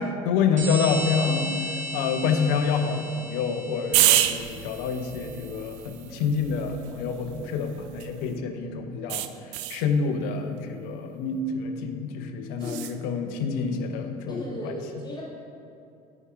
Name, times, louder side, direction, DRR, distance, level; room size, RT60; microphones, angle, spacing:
voice 1, 0.0-9.3 9.7-14.6, left 5 dB, 55° left, 7 dB, 0.7 m, -27 dB
sound 1, 0.6-4.8, equal, 40° right, 2.1 m, -35 dB
sound 2, 3.9-8.3 9.1-9.9 12.6-13.0, right 14 dB, 55° right, 0.4 m, -28 dB
voice 2, 14.3-15.2, left 1 dB, 20° left, -4 dB, 1.8 m, -35 dB
9.6 x 4.8 x 5.0 m, 2.6 s
figure-of-eight pair, 60°, 19 cm